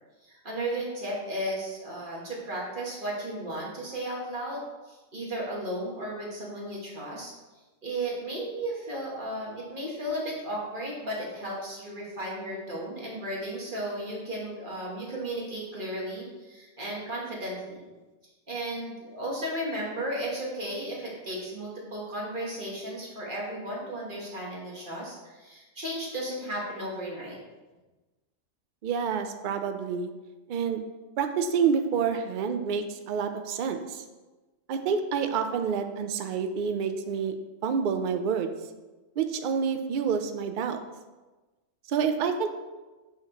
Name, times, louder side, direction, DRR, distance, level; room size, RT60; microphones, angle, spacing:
voice 1, 0.2-7.3 7.8-17.9 18.5-27.4, right 1 dB, 40° right, -4 dB, 1.4 m, -34 dB
voice 2, 28.8-30.1 30.5-30.8 31.2-34.0 34.7-37.4 37.6-38.5 39.2-40.8 41.9-42.5, right 6 dB, 75° right, 7 dB, 0.4 m, -28 dB
6.5 x 5.6 x 2.9 m, 1.2 s
omnidirectional pair, 1.4 m